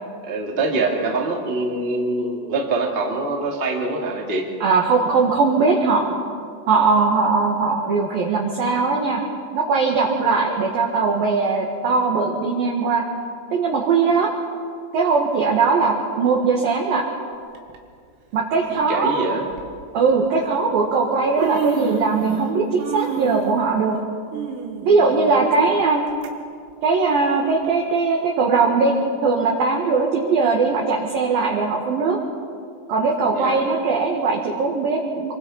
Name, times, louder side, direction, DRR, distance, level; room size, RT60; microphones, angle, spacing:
voice 1, 0.2-4.4 18.7-19.5 33.3-33.6, right 3 dB, 25° right, 0 dB, 1.1 m, -24 dB
voice 2, 4.6-6.2 6.7-9.2 9.5-13.0 13.5-14.3 14.9-17.0 18.3-19.3 19.9-24.0 24.8-26.0 26.8-28.9 29.2-32.2 32.9-35.3, right 4 dB, 60° right, -1 dB, 2.9 m, -20 dB
Human voice, 17.5-17.8 18.8-18.9 19.5-19.7 20.7-20.8 21.1-22.5 22.8-26.3 26.7-26.8 27.6-27.7, right 6 dB, 85° right, 4.5 m, -29 dB
26.5 x 24.5 x 5.7 m, 2.3 s
omnidirectional pair, 5.9 m